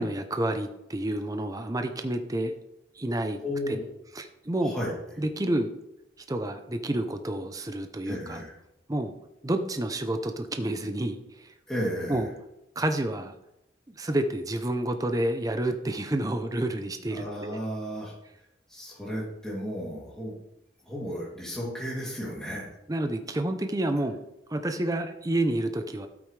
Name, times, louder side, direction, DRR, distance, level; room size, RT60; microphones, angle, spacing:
voice 1, 0.0-2.5 3.0-3.4 4.1-4.7 5.2-5.7 6.3-8.4 8.9-9.1 9.4-11.5 12.1-12.3 12.8-13.3 14.0-17.6 22.9-24.2 24.5-26.1, right 1 dB, 20° right, 7 dB, 0.6 m, -29 dB
voice 2, 3.4-3.8 4.6-4.9 8.0-8.5 11.7-12.2 17.1-18.1 18.7-20.3 20.8-22.7, equal, 5° left, -5 dB, 2.8 m, -33 dB
12.5 x 8.7 x 3.3 m, 0.85 s
head